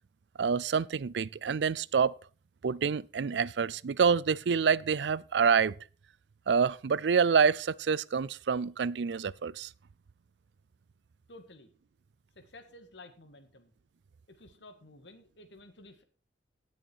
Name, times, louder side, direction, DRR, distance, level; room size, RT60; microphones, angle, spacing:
voice 1, 0.4-2.1 2.6-5.8 6.5-9.7, right 6 dB, 80° right, 0.4 m, -27 dB
voice 2, 11.3-11.7 12.4-13.7 14.3-16.0, left 2 dB, 85° left, 1.9 m, -53 dB
17.0 x 6.4 x 4.6 m
head